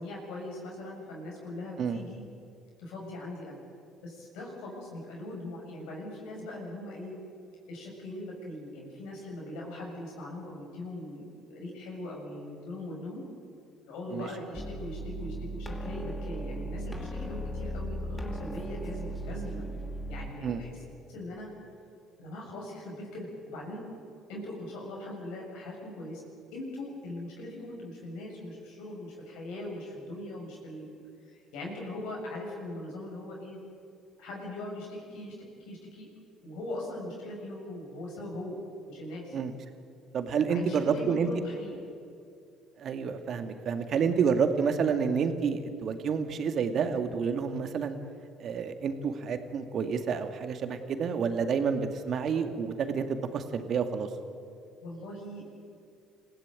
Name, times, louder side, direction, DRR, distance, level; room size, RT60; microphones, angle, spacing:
voice 1, 0.0-2.2 2.8-3.6 4.0-7.1 7.7-13.2 13.9-19.6 20.1-20.8 21.1-21.5 22.2-23.8 24.3-26.2 26.5-30.9 31.2-33.6 34.2-36.1 36.4-38.6 38.9-39.4 40.5-41.8 54.8-55.5, left 1 dB, 75° left, -2 dB, 7.0 m, -40 dB
sound 1, 14.5-20.3, right 1 dB, 15° left, 2.6 m, -37 dB
voice 2, 40.1-41.3 42.8-48.0 48.4-54.1, right 6 dB, 55° right, 7 dB, 2.2 m, -29 dB
26.0 x 16.5 x 9.0 m, 2.4 s
hypercardioid pair, 60°, 0 cm